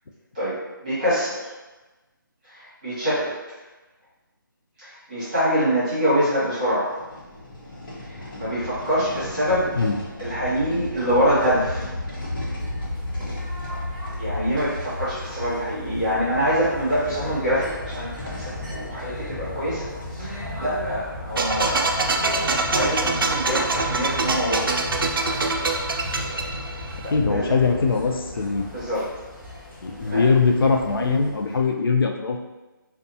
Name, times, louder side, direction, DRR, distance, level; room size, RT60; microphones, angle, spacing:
voice 1, 0.3-1.5 2.5-3.4 4.8-6.9 8.0-9.7 10.2-11.9 14.2-19.9 20.2-22.2 22.7-24.7 27.0-27.6 28.7-29.1 30.0-30.3, equal, 20° right, -13 dB, 1.2 m, -25 dB
sound 1, 6.9-20.2 20.9-21.0 21.2-21.3 21.9-23.5, left 1 dB, 65° left, 1.0 m, -35 dB
sound 2, 12.5-31.7, left 1 dB, 15° left, 1.4 m, -35 dB
sound 3, 21.4-27.1, right 3 dB, 75° right, 0.4 m, -25 dB
voice 2, 27.1-28.7 29.8-32.4, left 4 dB, 90° left, 2 dB, 0.4 m, -21 dB
2.6 x 2.3 x 2.6 m, 1.1 s
hypercardioid pair, 175°, 12 cm